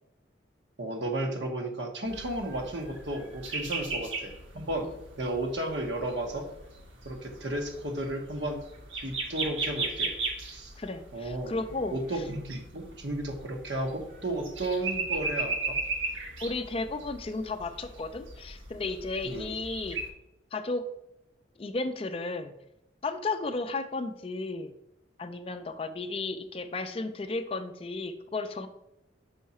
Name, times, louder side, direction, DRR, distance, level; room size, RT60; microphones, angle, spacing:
voice 1, 0.8-4.9 5.2-6.5 7.0-8.6 9.0-10.1 10.5-10.7 11.1-11.5 11.9-15.8 19.2-19.5, right 1 dB, 70° right, 3 dB, 1.1 m, -33 dB
sound 1, 2.1-20.1, right 3 dB, 85° right, 1.2 m, -37 dB
voice 2, 10.8-12.0 16.4-20.0 20.5-20.8 21.6-22.5 23.0-24.7 25.2-28.7, left 3 dB, 30° left, 9 dB, 0.4 m, -34 dB
5.5 x 4.8 x 4.2 m, 0.85 s
head